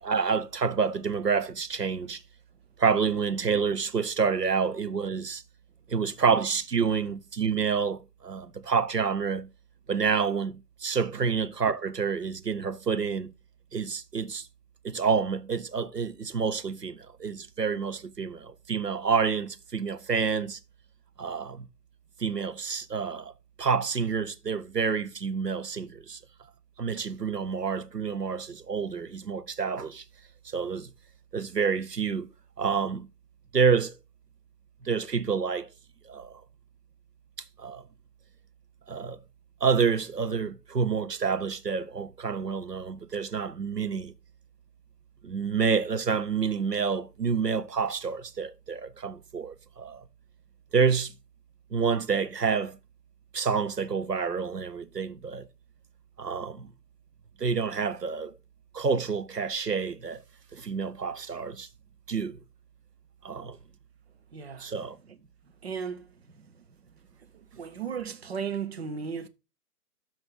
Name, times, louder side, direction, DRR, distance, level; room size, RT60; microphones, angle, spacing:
voice 1, 0.0-2.2 2.8-5.4 5.9-9.5 9.9-13.3 13.7-14.5 14.8-20.6 21.2-21.7 22.2-23.3 23.6-26.2 26.8-30.0 30.4-30.9 31.3-32.3 32.6-33.1 33.5-33.9 34.8-35.7 36.0-36.4 37.6-37.8 38.9-39.2 39.6-44.1 45.2-50.0 50.7-51.1 51.7-52.8 53.3-55.5 56.2-56.7 57.4-58.3 58.7-60.2 60.5-61.7 62.1-62.4 63.2-63.6 64.6-65.0, right 6 dB, 85° right, 1.0 m, -28 dB
voice 2, 64.3-64.7 65.6-66.1 67.3-69.3, right 6 dB, 40° right, 1.0 m, -35 dB
12.5 x 4.4 x 3.8 m
figure-of-eight pair, 140°, 47 cm